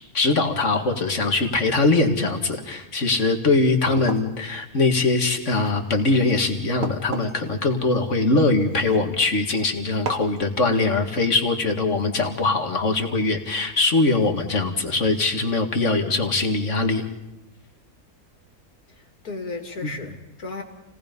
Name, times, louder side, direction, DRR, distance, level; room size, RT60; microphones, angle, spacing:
voice 1, 0.1-17.1 19.8-19.9, left 3 dB, 50° left, 5 dB, 2.3 m, -22 dB
sound 1, 3.6-9.5 10.1-10.4, right 4 dB, 65° right, 1.9 m, -37 dB
voice 2, 18.9-20.6, left 3 dB, 75° left, 4 dB, 3.0 m, -35 dB
29.0 x 18.5 x 5.4 m, 0.98 s
omnidirectional pair, 1.6 m